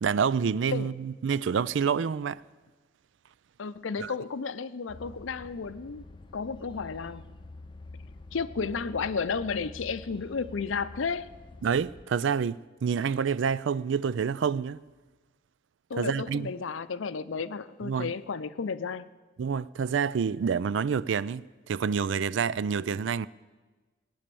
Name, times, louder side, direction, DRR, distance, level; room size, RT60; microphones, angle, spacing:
voice 1, 0.0-2.4 4.0-4.1 11.6-14.8 16.0-16.5 17.8-18.1 19.4-23.3, right 6 dB, 70° right, 0.4 m, -28 dB
voice 2, 3.6-6.0 6.3-7.4 8.3-11.3 15.9-19.1, left 5 dB, 85° left, 0.6 m, -33 dB
sound 1, 4.9-12.0, left 2 dB, 25° left, 0.5 m, -47 dB
18.0 x 10.0 x 6.9 m
head